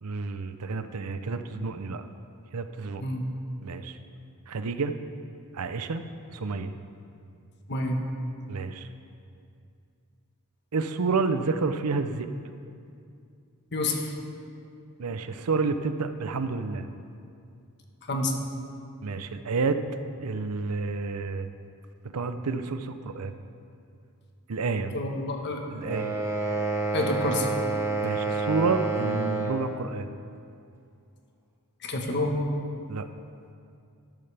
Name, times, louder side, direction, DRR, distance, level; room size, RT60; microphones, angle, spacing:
voice 1, 0.0-2.1 2.5-3.0 3.6-4.0 4.5-4.9 5.5-6.0 6.3-6.7 8.5-8.9 10.7-12.3 15.0-16.9 19.0-19.8 20.2-21.5 22.0-23.3 24.5-24.9 25.7-26.2 28.0-30.1 32.9-33.1, right 4 dB, 75° right, 9 dB, 0.6 m, -29 dB
voice 2, 7.7-8.0 13.7-14.1 18.1-18.3 24.9-25.6 26.9-27.5 31.8-32.4, left 2 dB, 50° left, 2 dB, 1.3 m, -28 dB
sound 1, 25.8-29.7, right 3 dB, 10° right, 1.1 m, -28 dB
12.5 x 12.5 x 3.4 m, 2.4 s
head